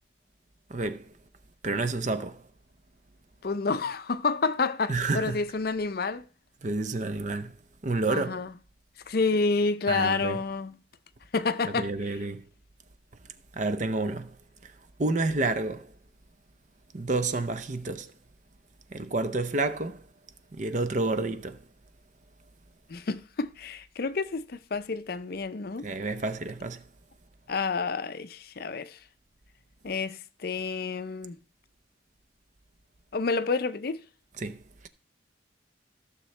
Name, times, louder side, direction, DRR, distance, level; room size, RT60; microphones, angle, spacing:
voice 1, 0.7-1.1 1.6-2.5 4.9-5.4 6.6-7.6 7.8-8.4 9.9-10.4 11.6-12.5 13.5-14.4 14.6-14.7 15.0-15.9 16.9-18.1 18.9-20.1 20.5-21.6 25.8-26.9 34.4-34.9, right 3 dB, 40° right, 0.6 m, -30 dB
voice 2, 3.4-6.2 8.1-8.5 9.1-10.7 11.3-11.9 22.9-25.9 27.5-29.0 29.8-31.4 33.1-34.0, left 4 dB, 50° left, 0.5 m, -29 dB
14.5 x 6.6 x 3.2 m
head